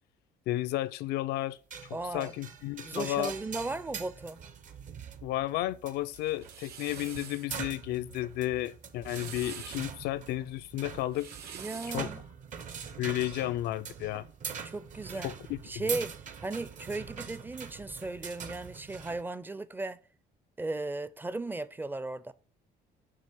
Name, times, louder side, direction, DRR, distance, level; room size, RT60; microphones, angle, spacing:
voice 1, 0.5-3.3 5.2-11.3 11.9-12.1 13.0-14.3 15.2-15.6 15.9-16.0, left 15 dB, 75° left, 0.4 m, -33 dB
sound 1, 1.7-19.2, right 7 dB, 50° right, 0.8 m, -43 dB
voice 2, 1.9-2.3 2.8-4.4 11.5-12.2 14.6-15.4 15.6-20.0 20.6-22.3, right 2 dB, 10° right, 0.4 m, -36 dB
sound 2, 6.2-7.5 8.8-9.9 11.0-12.1, right 7 dB, 70° right, 1.1 m, -45 dB
7.4 x 2.9 x 6.0 m
cardioid pair, 110°, 17 cm